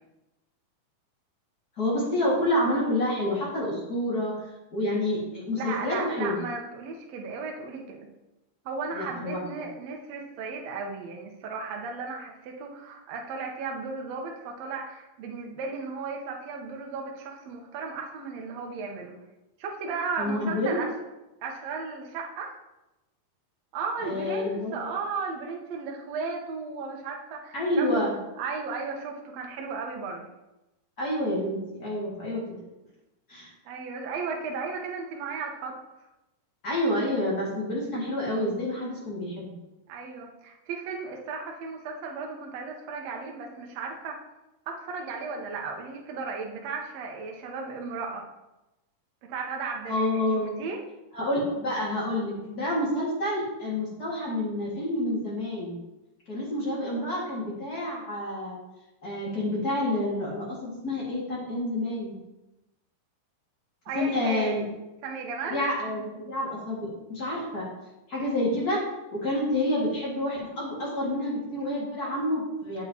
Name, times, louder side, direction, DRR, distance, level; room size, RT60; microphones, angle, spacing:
voice 1, 1.8-4.3 4.7-6.4 8.9-9.4 20.2-20.8 24.0-24.9 27.5-28.2 31.0-32.4 33.3-33.5 36.6-39.5 49.8-50.6 51.1-55.8 56.3-58.6 59.0-62.1 63.9-64.6 65.4-67.7 68.1-68.8 69.1-72.8, left 1 dB, 30° left, -5 dB, 1.9 m, -28 dB
voice 2, 5.5-8.1 8.6-19.2 19.6-20.9 21.4-22.6 23.7-28.1 28.4-30.3 33.6-35.8 39.9-44.2 44.7-48.3 49.3-50.3 50.6-50.8 63.8-64.7 65.0-65.6, right 4 dB, 80° right, 1 dB, 1.4 m, -35 dB
8.1 x 7.8 x 2.9 m, 0.97 s
omnidirectional pair, 4.5 m